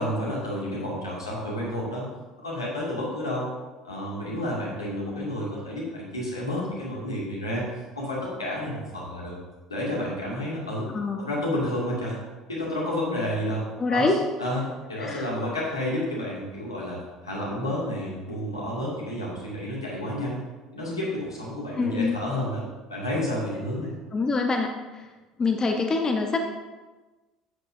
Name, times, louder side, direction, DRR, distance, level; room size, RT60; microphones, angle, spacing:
voice 1, 0.0-2.0 2.4-3.5 3.8-7.6 8.0-9.4 9.7-10.9 11.2-12.2 12.5-14.1 14.4-20.4 20.7-22.6 22.9-23.9, left 1 dB, 90° left, -5 dB, 2.3 m, -30 dB
voice 2, 10.9-11.3 13.8-14.2 15.0-15.3 21.7-22.2 24.1-25.1 25.4-26.4, left 3 dB, 25° left, 3 dB, 1.0 m, -25 dB
11.0 x 8.1 x 2.7 m, 1.2 s
figure-of-eight pair, 60°, 2 cm